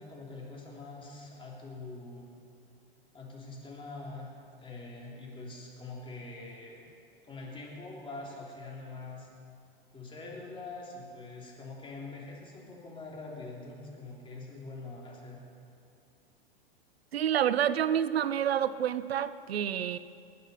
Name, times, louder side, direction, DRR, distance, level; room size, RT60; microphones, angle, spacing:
voice 1, 0.0-2.3 3.1-4.3 4.6-6.8 7.2-9.3 9.9-15.4, left 3 dB, 15° left, -3 dB, 3.4 m, -44 dB
voice 2, 17.1-20.0, right 9 dB, 80° right, 15 dB, 0.6 m, -28 dB
20.0 x 9.4 x 5.6 m, 2.5 s
hypercardioid pair, 100°, 31 cm